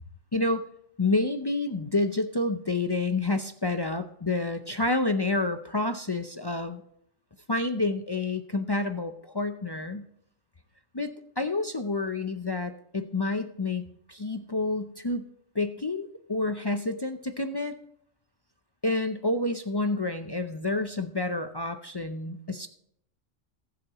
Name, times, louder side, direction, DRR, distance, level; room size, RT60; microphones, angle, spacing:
voice 1, 0.3-0.7 1.0-6.8 7.5-10.1 10.9-13.8 14.1-15.3 15.5-17.8 18.8-22.7, left 2 dB, 35° left, 7 dB, 0.4 m, -29 dB
19.0 x 7.8 x 3.0 m, 0.72 s
omnidirectional pair, 1.3 m